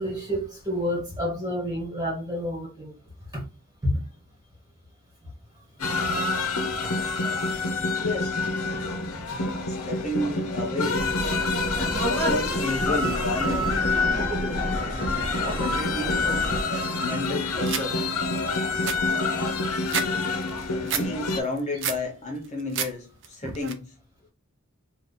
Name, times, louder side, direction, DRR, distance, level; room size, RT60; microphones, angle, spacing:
voice 1, 0.0-2.9 3.3-3.4 6.8-7.0 9.3-9.4 23.4-23.5, equal, 15° right, 1.8 m, -30 dB
sound 1, 5.8-21.4, left 3 dB, 90° left, 0.8 m, -27 dB
voice 2, 8.0-8.4 9.7-11.1 12.0-13.8 15.4-16.7 17.0-18.0 20.8-24.0, left 2 dB, 30° left, 0.6 m, -31 dB
sound 2, 10.9-16.6, right 2 dB, 10° left, 1.0 m, -32 dB
sound 3, 17.7-17.9 18.3-18.4 18.7-20.1 20.4-21.1 21.5-22.0 22.4-22.9 23.2-23.7, right 7 dB, 55° right, 0.5 m, -30 dB
3.2 x 2.6 x 4.0 m
head